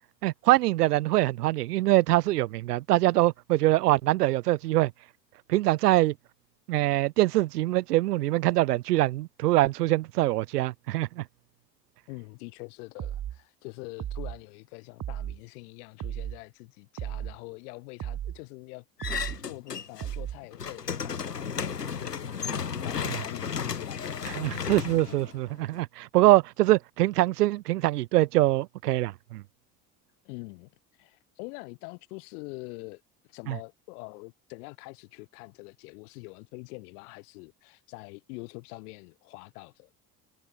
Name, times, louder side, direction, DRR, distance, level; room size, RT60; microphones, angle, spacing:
voice 1, 0.2-4.9 5.5-6.1 6.7-11.2 24.4-29.4 33.5-33.6, right 17 dB, 80° right, 1.5 m, -24 dB
voice 2, 12.1-18.8 19.4-24.6 30.2-39.9, left 27 dB, 70° left, 6.1 m, -44 dB
sound 1, 13.0-13.4 14.0-14.4 15.0-15.4 16.0-16.4 17.0-17.4 18.0-18.4 19.0-19.4 20.0-20.4, right 11 dB, 45° right, 3.0 m, -35 dB
sound 2, 19.0-20.1 20.4-25.8, left 6 dB, 90° left, 7.2 m, -34 dB
hypercardioid pair, 60°, 46 cm